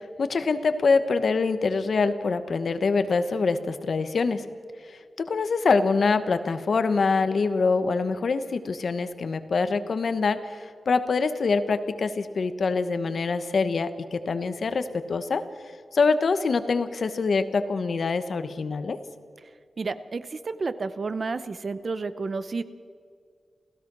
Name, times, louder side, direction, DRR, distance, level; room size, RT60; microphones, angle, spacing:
voice 1, 0.0-4.5 4.9-15.4 15.9-19.0, left 4 dB, 50° left, 11 dB, 1.1 m, -25 dB
voice 2, 19.8-22.6, right 4 dB, 40° right, 13 dB, 0.8 m, -31 dB
28.5 x 16.0 x 6.2 m, 2.2 s
wide cardioid pair, 180°, 0 cm